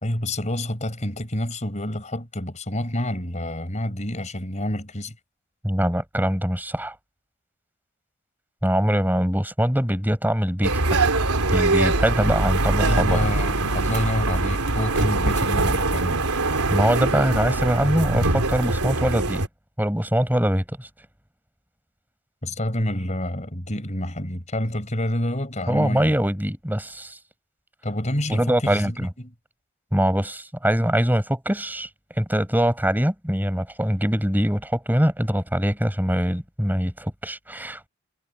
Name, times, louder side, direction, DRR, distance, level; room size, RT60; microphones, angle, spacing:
voice 1, 0.0-5.1 12.8-16.2 22.4-26.2 27.8-29.3, left 1 dB, 30° left, 4.6 m, -28 dB
voice 2, 5.6-6.9 8.6-11.0 11.5-13.2 16.7-19.4 19.8-20.9 25.7-27.2 28.3-29.1 29.9-31.9 32.2-37.9, equal, 10° right, 6.4 m, -23 dB
sound 1, 10.6-19.5, right 2 dB, 85° right, 3.4 m, -23 dB
head